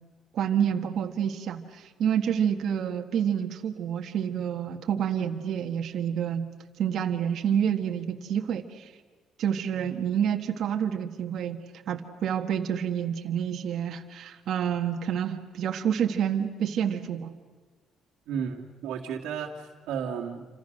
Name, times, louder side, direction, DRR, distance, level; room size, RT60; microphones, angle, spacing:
voice 1, 0.3-6.5 6.8-8.9 9.4-11.6 11.9-17.3, right 8 dB, 60° right, 4 dB, 1.6 m, -28 dB
voice 2, 18.3-20.5, right 7 dB, 90° right, 0 dB, 2.0 m, -33 dB
28.0 x 26.0 x 6.6 m, 1.4 s
cardioid pair, 145°, 0 cm